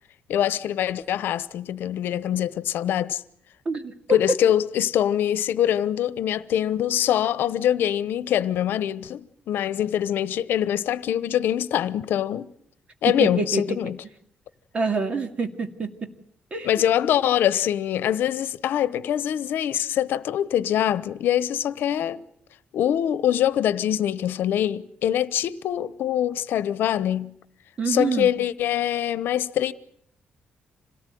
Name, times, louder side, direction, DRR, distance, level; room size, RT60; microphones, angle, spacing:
voice 1, 0.3-3.2 4.1-12.5 13.0-14.0 16.6-22.2 22.7-27.3 27.9-29.7, left 10 dB, 80° left, 0.9 m, -24 dB
voice 2, 3.7-4.2 13.2-13.8 14.7-16.1 16.5-16.7 27.8-28.3, right 3 dB, 35° right, 2.4 m, -26 dB
26.5 x 18.0 x 9.3 m
cardioid pair, 135°, 3 cm